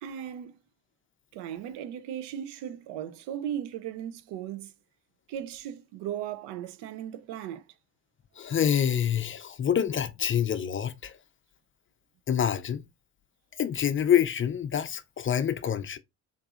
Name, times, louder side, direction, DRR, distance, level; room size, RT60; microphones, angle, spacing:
voice 1, 0.0-0.6 1.3-4.7 5.3-7.6, right 10 dB, 70° right, 0.6 m, -37 dB
voice 2, 8.4-11.1 12.3-12.8 13.6-16.0, left 9 dB, 30° left, 0.5 m, -26 dB
4.6 x 2.7 x 2.4 m
hypercardioid pair, 60°, 42 cm